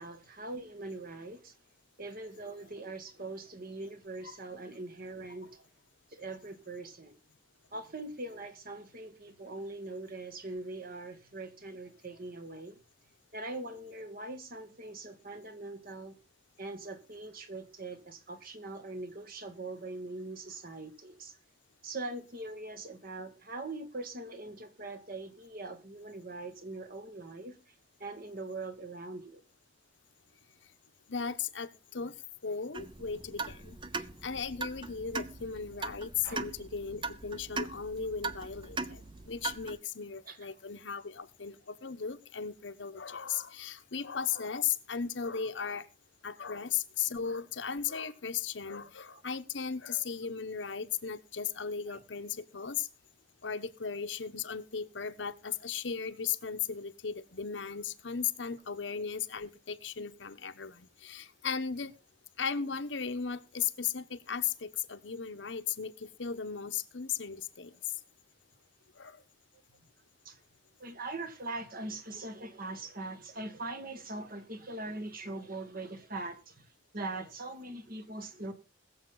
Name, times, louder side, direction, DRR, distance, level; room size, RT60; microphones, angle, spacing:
voice 1, 0.0-1.5 2.0-5.7 6.1-7.2 7.7-12.8 13.3-16.2 16.6-21.3 21.8-27.6 28.0-29.4 36.2-36.4 40.3-40.4 46.4-46.5 49.1-49.2 51.9-52.0 70.3-70.4 70.8-76.7 76.9-78.5, right 2 dB, 50° right, 1.9 m, -42 dB
voice 2, 31.1-45.9 46.2-52.9 53.4-61.9 62.4-68.0 68.9-69.2, left 7 dB, 85° left, 1.0 m, -36 dB
sound 1, 32.7-39.8, right 3 dB, 25° right, 0.7 m, -40 dB
21.0 x 7.3 x 3.9 m
head